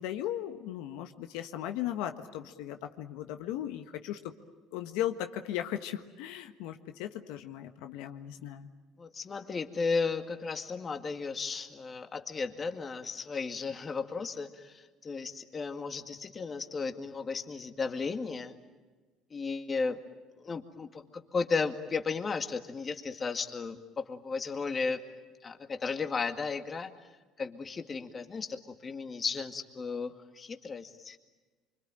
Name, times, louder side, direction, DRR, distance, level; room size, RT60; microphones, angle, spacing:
voice 1, 0.0-4.2 4.7-8.7, left 12 dB, 80° left, 7 dB, 1.5 m, -37 dB
voice 2, 9.0-18.5 19.3-20.0 20.4-21.0 21.3-25.0 25.4-26.9 27.4-31.2, left 4 dB, 30° left, 7 dB, 2.1 m, -34 dB
25.5 x 25.0 x 9.1 m, 1.3 s
supercardioid pair, 105°, 0 cm